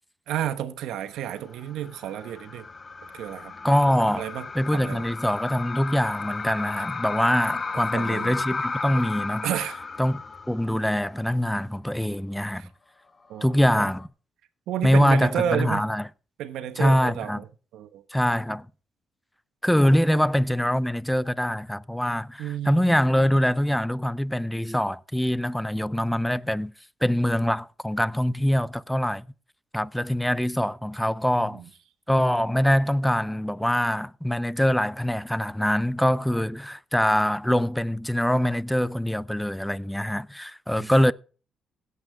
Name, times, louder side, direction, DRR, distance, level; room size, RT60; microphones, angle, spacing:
voice 1, 0.3-2.7 3.1-3.5 4.2-5.0 7.9-8.4 9.4-9.8 12.5-12.7 13.3-13.9 14.7-15.8 16.4-17.5 17.7-18.0 22.4-23.0 31.4-31.7 40.8-40.9, right 10 dB, 85° right, 1.1 m, -31 dB
Creepy atmosphere, 1.4-11.0 11.3-11.4 13.5-14.1, left 4 dB, 35° left, 1.0 m, -34 dB
voice 2, 3.6-4.2 4.5-9.5 10.0-10.2 10.5-12.6 13.4-14.1 14.8-16.1 16.8-17.4 18.1-18.7 19.6-26.7 27.0-29.3 29.7-31.6 32.1-41.1, equal, 5° left, 0.5 m, -24 dB
17.0 x 8.2 x 3.5 m
cardioid pair, 90°, 0 cm